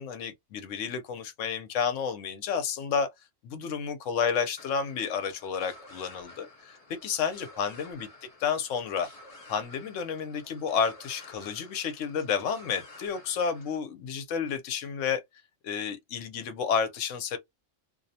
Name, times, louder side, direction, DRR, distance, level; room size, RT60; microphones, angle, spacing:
voice 1, 0.0-3.1 3.4-8.1 8.4-9.1 9.5-15.2 15.6-17.4, left 6 dB, 80° left, 1.0 m, -31 dB
sound 1, 4.6-13.8, left 2 dB, 35° left, 0.8 m, -51 dB
2.5 x 2.0 x 2.7 m
omnidirectional pair, 1.3 m